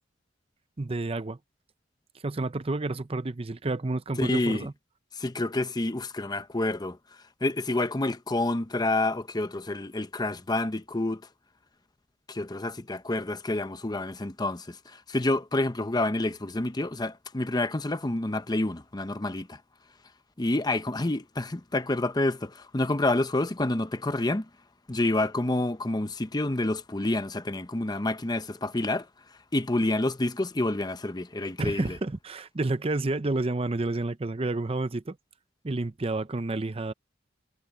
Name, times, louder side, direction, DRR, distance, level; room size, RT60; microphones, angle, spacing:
voice 1, 0.8-1.4 2.2-4.7 31.6-35.2 35.6-36.9, right 2 dB, 30° right, 0.6 m, -30 dB
voice 2, 4.2-4.7 5.2-7.0 7.4-11.2 12.3-19.6 20.4-24.5 24.9-29.1 29.5-32.0, left 2 dB, 20° left, 0.8 m, -28 dB
head